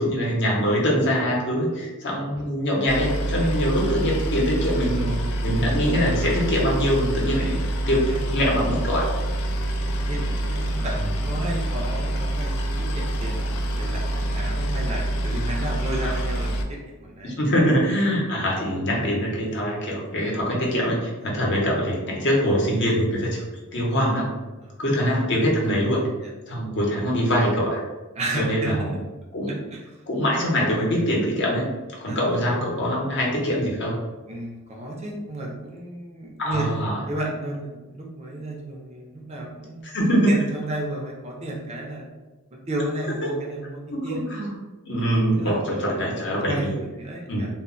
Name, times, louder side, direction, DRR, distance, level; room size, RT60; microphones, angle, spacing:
voice 1, 0.0-5.1 5.4-7.6 7.9-9.1 15.3-15.4 16.0-16.1 17.2-23.4 23.7-24.3 24.8-26.0 26.5-27.8 28.4-28.9 29.3-29.6 30.1-31.7 32.0-34.0 36.4-37.0 39.8-40.4 43.2-43.3 43.9-44.5 44.8-46.7 47.3-47.5, equal, 55° left, -3 dB, 0.7 m, -23 dB
Boat Water vehicle, 2.9-16.6, right 1 dB, 80° left, 0.4 m, -26 dB
voice 2, 5.1-5.4 8.1-8.2 9.5-9.7 10.1-17.4 21.2-21.3 24.6-24.7 26.2-26.3 28.2-28.7 29.7-29.8 32.0-32.2 34.3-39.9 40.3-42.1 42.5-44.2 45.4-45.5 46.5-47.5, right 1 dB, 30° right, -1 dB, 0.4 m, -33 dB
2.0 x 2.0 x 3.7 m, 1.2 s
head